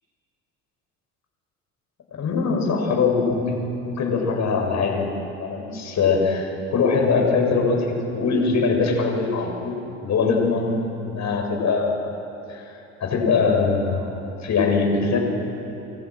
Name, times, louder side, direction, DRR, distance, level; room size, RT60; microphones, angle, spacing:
voice 1, 2.1-3.6 3.8-12.1 12.5-15.2, left 4 dB, 45° left, 1 dB, 7.8 m, -22 dB
28.0 x 27.5 x 6.4 m, 2.9 s
hypercardioid pair, 75°, 38 cm